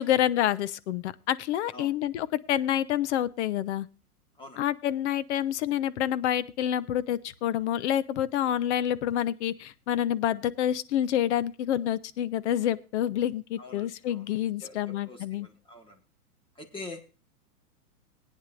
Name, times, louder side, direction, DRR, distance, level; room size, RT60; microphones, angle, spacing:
voice 1, 0.0-3.9 4.6-15.5, left 11 dB, 50° left, 17 dB, 0.9 m, -28 dB
voice 2, 13.6-14.2 14.6-16.0 16.6-17.0, left 2 dB, 10° left, 6 dB, 2.0 m, -45 dB
19.0 x 9.6 x 2.6 m, 0.32 s
hypercardioid pair, 140°, 45 cm